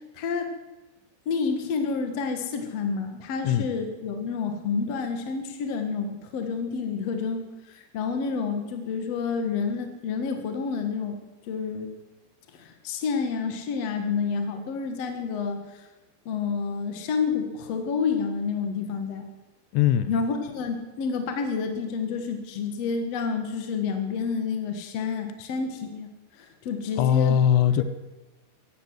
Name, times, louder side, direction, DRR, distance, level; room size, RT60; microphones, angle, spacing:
voice 1, 0.1-0.5 1.3-11.2 11.5-11.9 12.5-15.9 16.3-19.3 20.1-27.4 27.8-27.9, left 5 dB, 60° left, 5 dB, 1.8 m, -29 dB
voice 2, 19.7-20.1 27.0-27.8, left 9 dB, 85° left, 13 dB, 3.0 m, -20 dB
15.5 x 12.0 x 7.7 m, 1.1 s
omnidirectional pair, 4.9 m